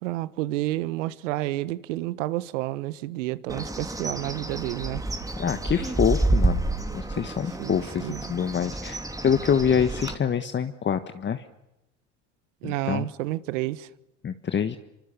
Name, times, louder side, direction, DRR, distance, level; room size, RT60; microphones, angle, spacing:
voice 1, 0.0-5.0 7.6-8.2 12.6-13.9, right 17 dB, 75° right, 1.4 m, -30 dB
Bird, 3.5-10.1, right 2 dB, 10° right, 2.9 m, -29 dB
voice 2, 5.4-6.7 6.9-11.4 12.6-13.1 14.2-14.8, left 7 dB, 30° left, 1.5 m, -26 dB
25.0 x 25.0 x 7.0 m
hypercardioid pair, 90°, 38 cm